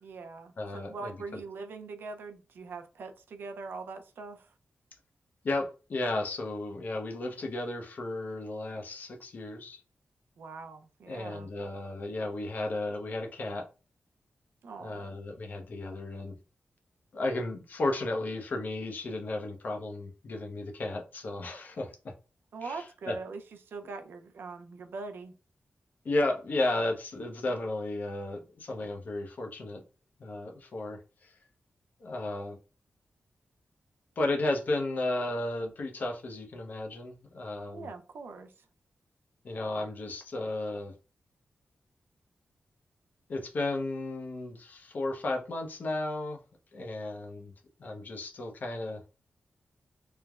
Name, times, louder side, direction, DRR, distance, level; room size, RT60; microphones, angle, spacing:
voice 1, 0.0-4.5 10.4-11.5 14.6-15.1 22.5-25.3 37.7-38.5, right 4 dB, 80° right, 0.4 m, -42 dB
voice 2, 0.6-1.1 5.4-9.8 11.1-13.7 14.8-16.3 17.1-21.9 22.6-23.1 26.0-29.8 30.2-31.3 32.0-32.6 34.2-37.9 39.4-40.9 43.3-46.4 46.7-47.5 47.8-49.0, left 2 dB, 55° left, 0.6 m, -34 dB
3.2 x 2.0 x 2.3 m
wide cardioid pair, 155°, 4 cm